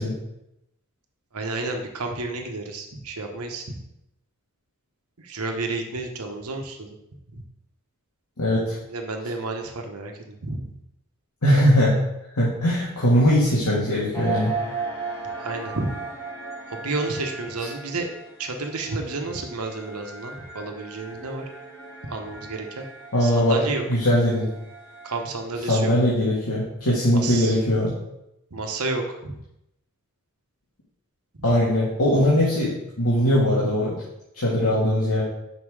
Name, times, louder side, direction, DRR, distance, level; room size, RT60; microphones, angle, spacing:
voice 1, 1.3-3.8 5.2-6.9 7.3-7.4 8.9-10.7 15.3-15.9 16.7-18.1 18.4-21.4 22.0-22.9 23.2-23.9 25.0-25.9 27.1-27.6 28.5-29.4 31.3-31.4, right 3 dB, 80° right, 4 dB, 1.1 m, -31 dB
voice 2, 8.4-8.8 11.4-12.0 12.4-14.5 23.1-23.6 23.9-24.5 25.7-27.9 31.4-34.0 34.3-35.2, equal, 85° left, -7 dB, 1.8 m, -20 dB
sound 1, 14.1-25.5, right 4 dB, 15° left, 1.7 m, -37 dB
5.8 x 5.5 x 4.8 m, 0.84 s
head